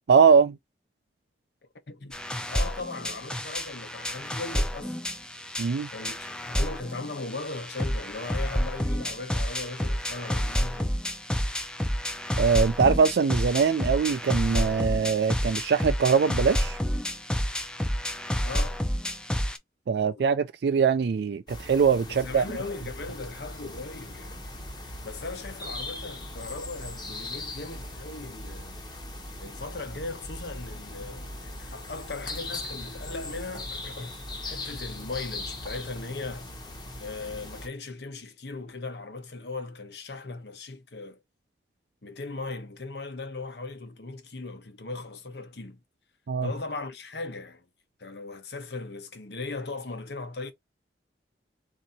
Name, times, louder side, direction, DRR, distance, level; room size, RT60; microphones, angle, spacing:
voice 1, 0.1-0.6 5.6-5.9 12.4-16.8 19.9-22.4 46.3-46.5, right 6 dB, 70° right, 0.4 m, -22 dB
voice 2, 1.9-5.0 5.9-11.0 18.4-18.8 20.1-20.2 22.1-24.4 25.0-28.8 29.4-36.5 37.0-41.2 42.0-45.8 46.4-47.7 48.0-50.5, left 3 dB, 70° left, 1.0 m, -38 dB
sound 1, 2.1-19.6, equal, 5° left, 0.4 m, -29 dB
sound 2, 21.5-37.7, left 2 dB, 25° left, 1.0 m, -39 dB
3.8 x 2.8 x 4.1 m
head